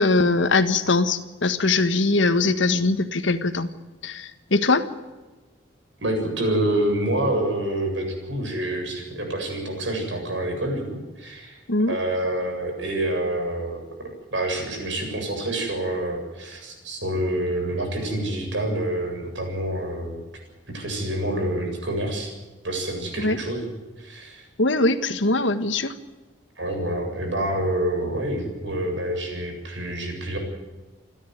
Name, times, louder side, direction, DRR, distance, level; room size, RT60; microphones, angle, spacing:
voice 1, 0.0-3.7 4.0-4.9 11.7-12.0 23.2-23.4 24.6-25.9, left 3 dB, 80° left, 10 dB, 1.6 m, -21 dB
voice 2, 6.0-11.6 11.9-20.2 20.7-22.3 22.6-23.7 24.0-24.5 26.6-30.4, right 1 dB, 75° right, 3 dB, 7.7 m, -27 dB
28.0 x 12.5 x 9.5 m, 1.2 s
head